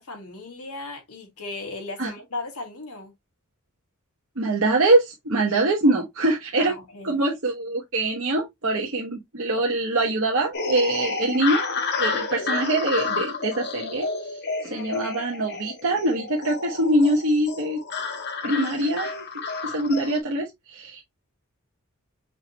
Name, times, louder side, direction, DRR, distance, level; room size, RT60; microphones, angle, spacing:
voice 1, 0.0-3.1 5.8-5.9 6.6-7.2 14.6-14.9, left 2 dB, 85° left, 2.0 m, -37 dB
voice 2, 4.4-6.7 7.0-11.7 12.0-14.1 14.6-17.8 18.4-19.2 19.6-21.0, right 2 dB, 60° right, 1.1 m, -23 dB
sound 1, 10.5-20.2, left 4 dB, 50° left, 1.2 m, -30 dB
5.7 x 3.2 x 2.9 m
head